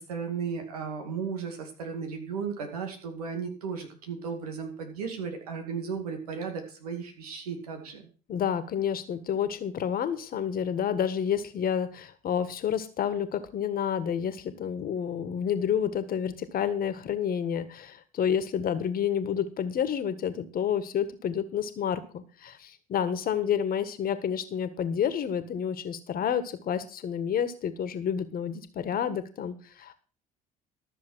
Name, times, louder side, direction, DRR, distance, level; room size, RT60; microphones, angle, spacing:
voice 1, 0.0-8.1, right 6 dB, 85° right, 4 dB, 2.3 m, -35 dB
voice 2, 8.3-29.9, left 8 dB, 50° left, 12 dB, 1.7 m, -29 dB
13.5 x 6.9 x 6.4 m, 0.38 s
hypercardioid pair, 55°, 19 cm